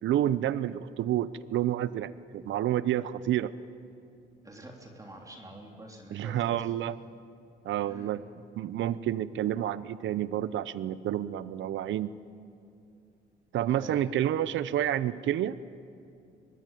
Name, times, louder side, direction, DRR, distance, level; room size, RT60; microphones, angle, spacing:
voice 1, 0.0-3.5 6.1-7.0 7.6-8.2 8.6-12.1 13.5-15.6, right 11 dB, 75° right, 16 dB, 0.7 m, -29 dB
voice 2, 4.4-6.6 7.8-8.1 13.7-14.1, right 1 dB, 15° right, 0 dB, 3.5 m, -46 dB
24.5 x 20.5 x 9.2 m, 2.5 s
cardioid pair, 90°, 20 cm